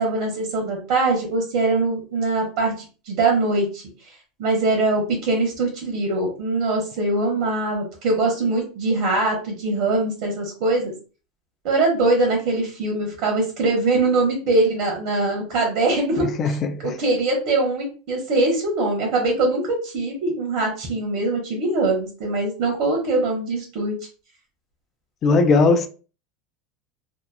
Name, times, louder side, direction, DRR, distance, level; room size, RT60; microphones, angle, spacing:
voice 1, 0.0-3.8 4.4-10.9 11.6-16.3 16.8-23.9, right 2 dB, 55° right, 1.1 m, -22 dB
voice 2, 16.2-16.9 25.2-25.9, left 3 dB, 30° left, 0.3 m, -19 dB
2.9 x 2.2 x 2.3 m
supercardioid pair, 155°, 0 cm